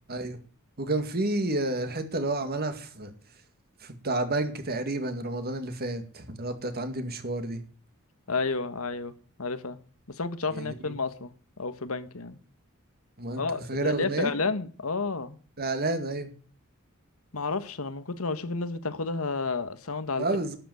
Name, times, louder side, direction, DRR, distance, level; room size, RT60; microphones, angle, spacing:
voice 1, 0.8-3.1 3.8-7.6 10.5-10.7 13.2-13.4 13.7-14.3 15.6-16.3 20.2-20.6, right 2 dB, 45° right, 2.1 m, -30 dB
voice 2, 8.3-9.1 9.4-9.8 10.1-11.3 11.6-12.4 13.4-15.4 17.3-20.3, left 3 dB, 80° left, 1.4 m, -31 dB
12.0 x 8.1 x 7.9 m
head